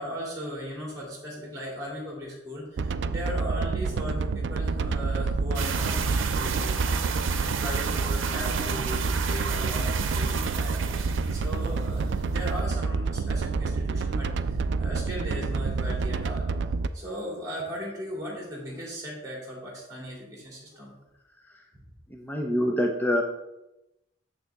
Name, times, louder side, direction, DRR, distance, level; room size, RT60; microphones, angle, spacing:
voice 1, 0.0-16.5 16.9-20.9 21.7-21.8, equal, 15° right, -3 dB, 2.6 m, -38 dB
sound 1, 2.8-16.9, right 4 dB, 65° right, 0.3 m, -28 dB
sound 2, 5.5-12.6, right 6 dB, 90° right, 0.7 m, -33 dB
voice 2, 22.1-23.2, equal, 10° left, 2 dB, 0.5 m, -26 dB
7.3 x 6.6 x 3.4 m, 0.93 s
head